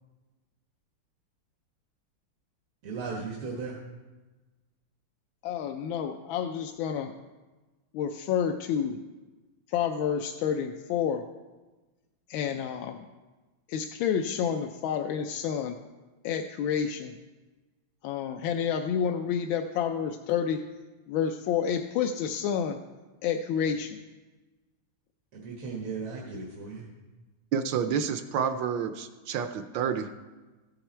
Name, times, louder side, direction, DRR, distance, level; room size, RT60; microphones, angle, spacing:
voice 1, 2.8-3.7 25.4-26.8, right 4 dB, 90° right, -1 dB, 2.2 m, -36 dB
voice 2, 5.4-7.1 7.9-9.0 9.7-11.2 12.3-13.0 13.7-15.7 16.2-17.2 18.0-20.6 21.1-22.8 23.2-24.0, left 8 dB, 75° left, 5 dB, 1.3 m, -29 dB
voice 3, 27.5-30.1, right 7 dB, 70° right, 9 dB, 1.2 m, -29 dB
14.5 x 8.0 x 4.4 m, 1.2 s
omnidirectional pair, 2.3 m